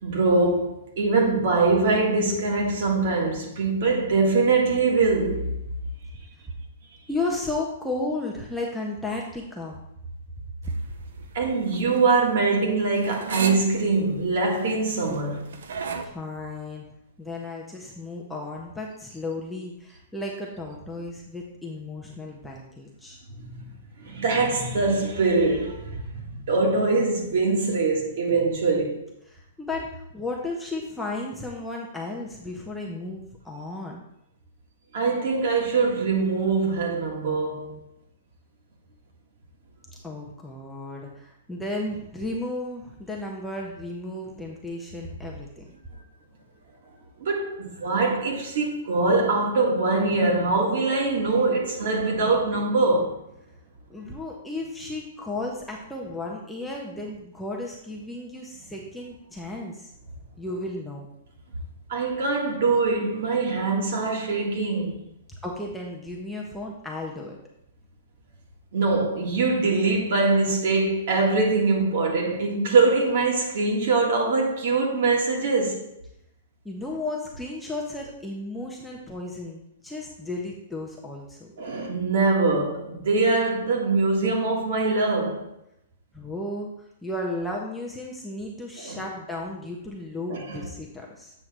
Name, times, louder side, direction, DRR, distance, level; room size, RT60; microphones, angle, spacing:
voice 1, 0.0-5.5 11.3-15.5 23.4-23.7 24.0-29.1 34.9-37.8 47.2-53.2 61.9-65.0 68.7-75.9 81.6-85.5 88.8-89.0 90.3-90.7, right 3 dB, 50° right, 1.5 m, -23 dB
voice 2, 7.1-9.8 10.6-10.7 16.0-16.8 17.2-23.2 29.3-34.0 40.0-45.7 53.9-59.9 60.4-61.1 65.4-67.4 76.6-81.5 86.1-86.7 87.0-91.3, left 2 dB, ahead, 0.5 m, -34 dB
sound 1, 10.6-16.1, right 4 dB, 75° right, 0.7 m, -35 dB
7.7 x 3.1 x 5.9 m
hypercardioid pair, 175°, 0 cm